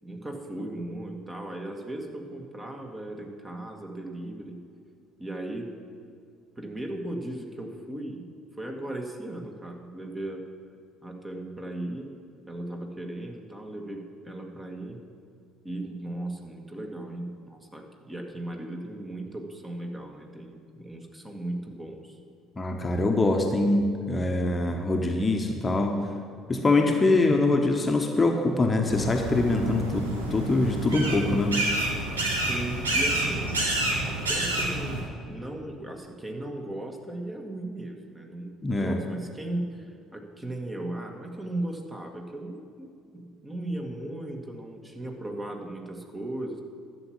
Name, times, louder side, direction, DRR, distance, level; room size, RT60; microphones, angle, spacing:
voice 1, 0.0-4.7 5.2-5.7 6.5-8.2 8.6-10.4 11.0-12.1 12.5-15.1 15.6-22.2 32.5-33.5 34.0-46.6, right 1 dB, 15° right, 2 dB, 1.8 m, -37 dB
voice 2, 22.6-26.0 26.5-31.6 38.6-38.9, left 2 dB, 25° left, 3 dB, 1.2 m, -24 dB
sound 1, 28.9-35.0, right 1 dB, 80° right, 1.5 m, -28 dB
12.0 x 7.1 x 8.5 m, 2.3 s
figure-of-eight pair, 55°, 0 cm